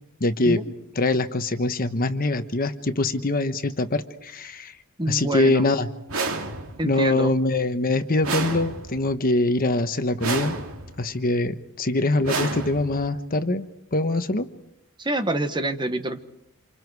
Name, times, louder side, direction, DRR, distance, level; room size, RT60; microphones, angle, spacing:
voice 1, 0.2-0.6 0.9-4.7 5.1-5.9 6.8-10.6 11.0-14.5, left 2 dB, 40° left, 9 dB, 1.2 m, -23 dB
voice 2, 5.0-5.7 6.8-7.3 15.0-16.2, right 1 dB, 20° right, 8 dB, 1.2 m, -27 dB
sound 1, 6.1-7.0 8.2-9.2 10.2-11.0 12.2-13.2, right 3 dB, 70° right, 2.6 m, -30 dB
28.0 x 27.5 x 4.8 m, 0.81 s
head